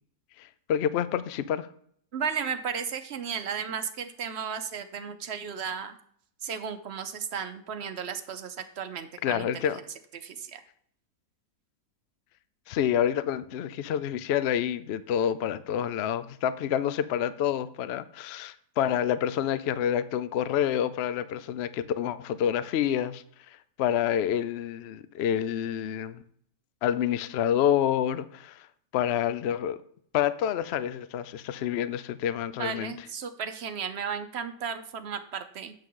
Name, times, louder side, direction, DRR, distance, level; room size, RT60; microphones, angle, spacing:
voice 1, 0.4-1.7 9.2-9.8 12.7-23.2 23.8-26.2 26.8-28.7 28.9-29.8 30.1-33.1, left 9 dB, 70° left, 14 dB, 0.6 m, -28 dB
voice 2, 2.1-6.0 6.4-9.5 10.2-10.6 32.6-35.7, right 7 dB, 55° right, 8 dB, 0.8 m, -34 dB
8.8 x 7.3 x 3.8 m, 0.63 s
omnidirectional pair, 1.7 m